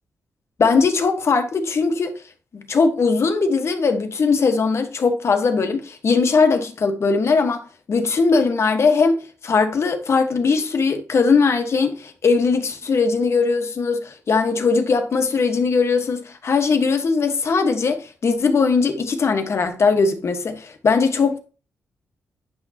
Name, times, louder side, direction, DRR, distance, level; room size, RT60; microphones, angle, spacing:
voice 1, 0.6-2.1 2.5-7.6 7.9-21.4, left 4 dB, 60° left, 1.4 m, -19 dB
9.4 x 6.2 x 2.9 m
cardioid pair, 65°, 5 cm